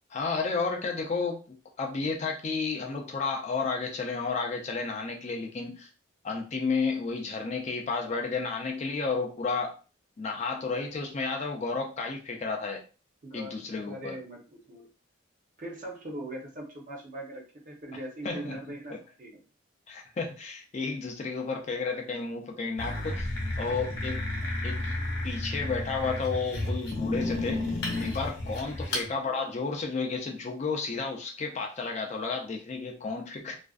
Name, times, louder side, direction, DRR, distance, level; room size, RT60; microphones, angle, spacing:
voice 1, 0.1-1.4 1.8-5.9 6.2-9.8 10.2-12.8 13.3-14.2 18.2-18.5 19.9-23.3 23.6-24.2 24.6-25.0 25.2-33.6, left 4 dB, 35° left, 2 dB, 0.4 m, -32 dB
voice 2, 13.2-13.6 13.9-14.9 15.6-19.4 28.9-29.1, right 1 dB, 40° right, -1 dB, 0.7 m, -41 dB
sound 1, 22.8-29.1, left 2 dB, 55° left, 0.7 m, -32 dB
2.4 x 2.2 x 2.3 m, 0.35 s
head